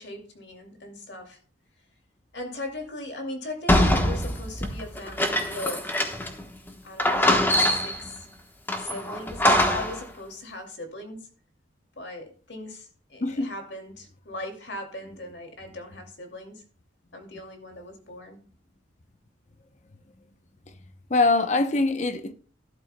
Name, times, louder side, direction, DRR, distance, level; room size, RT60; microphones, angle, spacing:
voice 1, 0.0-1.4 2.3-6.1 6.8-8.3 8.8-11.3 12.0-16.6 17.1-18.4, left 2 dB, 60° left, 2.4 m, -39 dB
sound 1, 3.7-6.4 6.7-6.8 7.0-8.1 8.7-10.0, left 1 dB, 10° left, 1.0 m, -23 dB
voice 2, 13.2-13.5 21.1-22.3, left 3 dB, 35° left, 0.7 m, -23 dB
12.5 x 11.5 x 2.2 m
head